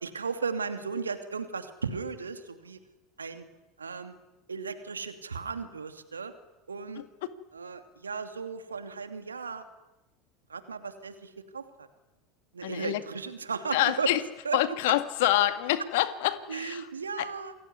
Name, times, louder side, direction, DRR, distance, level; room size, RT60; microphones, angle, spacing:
voice 1, 0.0-2.8 3.2-3.4 3.8-4.1 4.5-6.3 6.7-7.0 7.5-9.6 10.5-11.9 12.5-14.1 14.4-14.6 16.5-17.5, right 5 dB, 85° right, 8 dB, 2.7 m, -35 dB
voice 2, 12.6-13.0 13.7-14.2 14.5-16.9 17.2-17.3, left 15 dB, 65° left, 11 dB, 2.2 m, -26 dB
28.5 x 21.5 x 9.7 m, 1.0 s
figure-of-eight pair, 75°, 0 cm